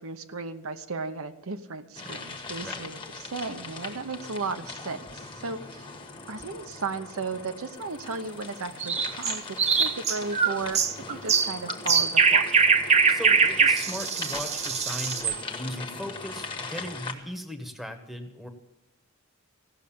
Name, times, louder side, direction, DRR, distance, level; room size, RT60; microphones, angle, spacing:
voice 1, 0.0-6.0 6.3-10.8 11.1-12.4, right 4 dB, 80° right, 8 dB, 0.9 m, -35 dB
sound 1, 1.9-17.1, left 3 dB, 25° left, 1.3 m, -40 dB
sound 2, 8.8-15.4, right 5 dB, 30° right, 0.7 m, -22 dB
voice 2, 13.1-18.5, equal, ahead, 6 dB, 1.1 m, -38 dB
16.0 x 6.5 x 8.6 m, 0.91 s
head